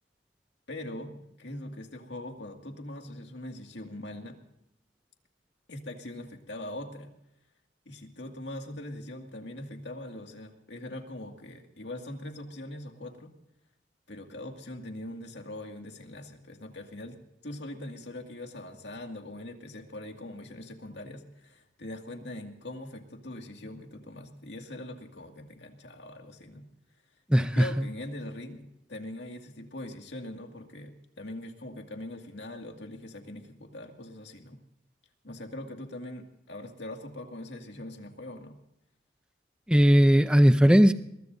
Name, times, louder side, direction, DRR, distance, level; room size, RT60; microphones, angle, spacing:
voice 1, 0.7-4.4 5.7-7.1 7.9-13.3 14.1-17.2 17.4-26.7 27.4-34.6 35.2-38.6, left 1 dB, 65° left, 3 dB, 2.2 m, -42 dB
voice 2, 27.3-27.7 39.7-40.9, equal, 5° right, 10 dB, 0.6 m, -18 dB
23.0 x 21.5 x 2.7 m, 0.81 s
head